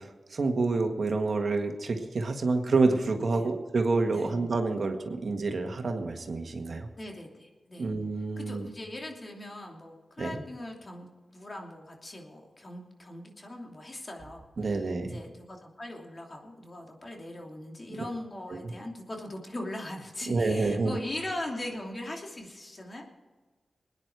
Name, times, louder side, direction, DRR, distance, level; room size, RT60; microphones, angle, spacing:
voice 1, 0.0-6.9 7.8-8.7 10.2-10.4 14.6-15.2 18.5-18.7 20.3-21.0, right 3 dB, 65° right, 4 dB, 1.6 m, -28 dB
voice 2, 7.0-7.9 8.4-14.5 15.0-23.1, left 1 dB, 40° left, 1 dB, 2.9 m, -40 dB
20.5 x 9.9 x 4.8 m, 1.3 s
cardioid pair, 45°, 0 cm